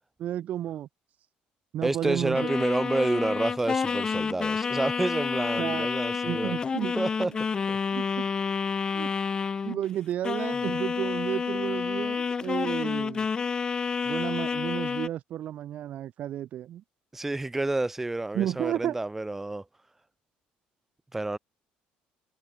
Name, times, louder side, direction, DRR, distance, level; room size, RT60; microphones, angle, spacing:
voice 1, 0.2-0.9 1.7-2.5 5.6-5.9 6.2-6.9 7.2-7.3 7.9-8.3 8.9-9.1 9.6-13.3 14.0-16.8 18.3-19.0, right 11 dB, 55° right, 1.5 m, -32 dB
voice 2, 1.8-6.6 7.0-7.3 7.7-7.8 17.1-19.6 21.1-21.4, right 2 dB, 10° right, 0.9 m, -29 dB
sound 1, 2.3-9.9 10.2-15.1, left 5 dB, 25° left, 0.6 m, -29 dB
cardioid pair, 130°, 3 cm